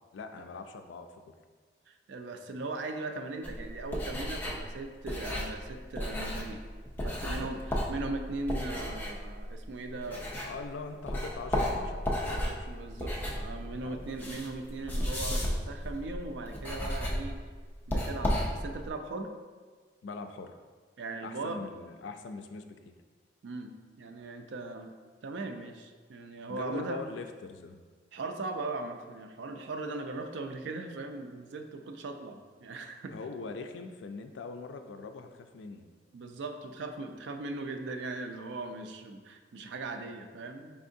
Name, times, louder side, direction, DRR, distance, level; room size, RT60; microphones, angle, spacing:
voice 1, 0.1-1.3 7.2-7.5 10.4-12.6 13.8-14.0 20.0-20.5 21.2-22.9 26.5-27.8 33.1-35.9, left 4 dB, 80° left, 7 dB, 0.3 m, -42 dB
voice 2, 1.9-6.6 7.0-7.6 7.9-10.3 12.3-17.4 17.9-19.3 21.0-21.6 23.4-24.9 25.2-27.0 28.1-33.2 36.1-40.8, right 3 dB, 75° right, 6 dB, 0.4 m, -39 dB
sound 1, 3.4-10.7 11.1-18.9, equal, 10° left, 0.5 m, -34 dB
4.7 x 3.5 x 2.6 m, 1.5 s
head